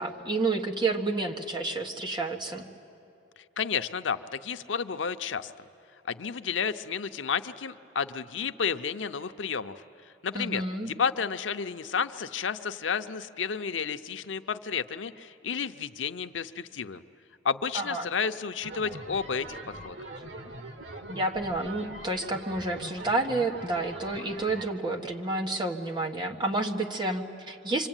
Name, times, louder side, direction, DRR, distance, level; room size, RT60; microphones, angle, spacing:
voice 1, 0.0-2.7 10.3-10.9 17.7-18.1 21.1-27.9, right 2 dB, 25° right, 2 dB, 1.6 m, -30 dB
voice 2, 3.6-5.5 6.1-9.7 10.2-17.0 17.4-20.0, left 6 dB, 90° left, 10 dB, 0.7 m, -31 dB
sound 1, 18.6-24.6, right 2 dB, 85° right, 1.9 m, -42 dB
26.0 x 25.5 x 9.0 m, 2.6 s
head